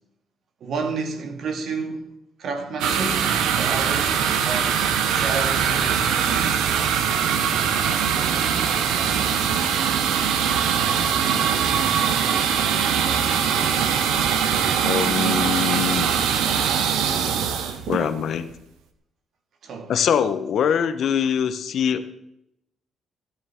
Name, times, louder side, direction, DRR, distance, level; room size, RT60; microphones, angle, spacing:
voice 1, 0.6-2.1 2.4-4.8 5.1-6.7 19.6-19.9, right 4 dB, 65° right, 2.4 m, -30 dB
sound 1, 2.8-18.5, right 7 dB, 90° right, 1.4 m, -22 dB
voice 2, 14.8-16.1 17.9-18.5 19.9-22.1, left 8 dB, 65° left, 1.1 m, -23 dB
16.5 x 9.6 x 4.5 m
cardioid pair, 90°, 0 cm